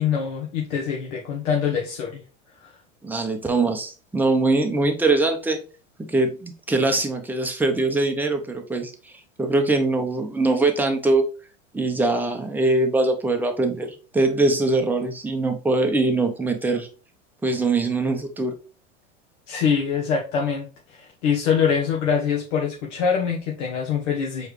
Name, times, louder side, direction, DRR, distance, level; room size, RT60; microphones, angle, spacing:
voice 1, 0.0-2.2 19.5-20.7 20.9-24.5, left 7 dB, 65° left, 1.1 m, -24 dB
voice 2, 3.0-5.6 6.0-8.9 9.4-11.2 11.7-16.9 17.4-18.5, right 2 dB, 5° right, 0.7 m, -22 dB
4.7 x 3.3 x 3.1 m
hypercardioid pair, 95°, 38 cm